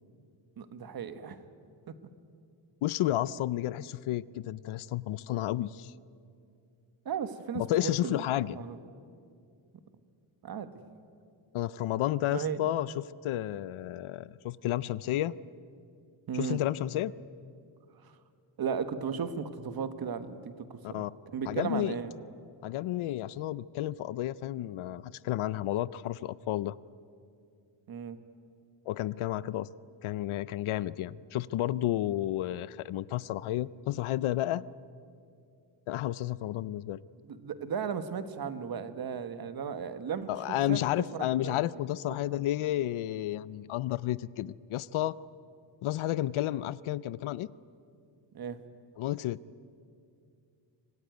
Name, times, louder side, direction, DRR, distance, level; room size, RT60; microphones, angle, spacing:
voice 1, 0.6-1.4 1.9-2.0 7.0-8.2 8.5-8.8 10.4-10.7 12.3-12.6 16.3-16.6 18.0-18.1 18.6-22.1 27.9-28.2 37.2-41.6 48.3-48.6, right 7 dB, 45° right, 10 dB, 1.4 m, -36 dB
voice 2, 2.8-5.9 7.6-8.6 11.5-12.9 13.2-15.3 16.3-17.1 20.8-21.1 21.5-21.9 22.6-26.8 28.9-29.7 30.0-34.7 35.9-37.0 40.3-45.1 45.8-47.5 49.0-49.4, left 14 dB, 85° left, 18 dB, 0.7 m, -31 dB
25.5 x 19.0 x 9.3 m, 2.4 s
wide cardioid pair, 155°, 48 cm